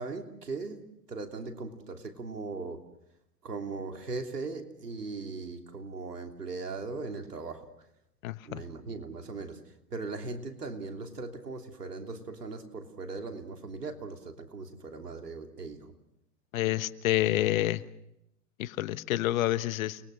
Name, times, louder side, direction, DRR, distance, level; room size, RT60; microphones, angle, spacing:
voice 1, 0.0-2.8 3.4-7.7 8.4-15.9, right 3 dB, 90° right, 4 dB, 3.2 m, -39 dB
voice 2, 8.2-8.6 16.5-17.8 18.6-20.0, left 15 dB, 60° left, 13 dB, 1.4 m, -28 dB
30.0 x 21.0 x 6.4 m, 0.81 s
hypercardioid pair, 110°, 46 cm